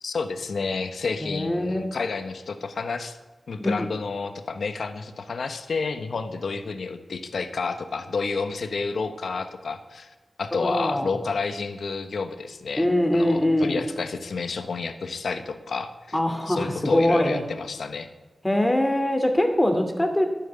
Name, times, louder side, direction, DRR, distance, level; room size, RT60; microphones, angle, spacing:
voice 1, 0.0-3.2 3.5-10.1 10.4-12.9 13.1-16.2 16.5-18.1, left 4 dB, 80° left, 10 dB, 1.1 m, -30 dB
voice 2, 1.2-1.9 3.6-3.9 10.5-11.1 12.8-13.8 16.1-17.4 18.4-20.3, left 1 dB, 15° left, 5 dB, 2.6 m, -23 dB
11.5 x 9.2 x 9.5 m, 1.2 s
cardioid pair, 55°, 0 cm